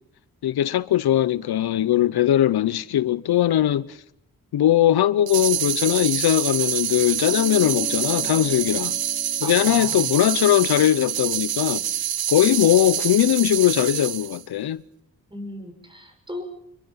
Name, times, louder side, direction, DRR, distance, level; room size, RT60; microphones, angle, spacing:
voice 1, 0.4-3.9 4.5-9.0 9.4-11.8 12.3-14.8, left 12 dB, 85° left, 0.8 m, -20 dB
sound 1, 5.3-14.4, right 11 dB, 75° right, 0.8 m, -26 dB
sound 2, 7.2-12.0, left 4 dB, 20° left, 1.0 m, -40 dB
voice 2, 9.4-9.9 15.3-16.4, left 1 dB, 15° right, 6.4 m, -36 dB
26.5 x 22.5 x 5.8 m
cardioid pair, 95°, 37 cm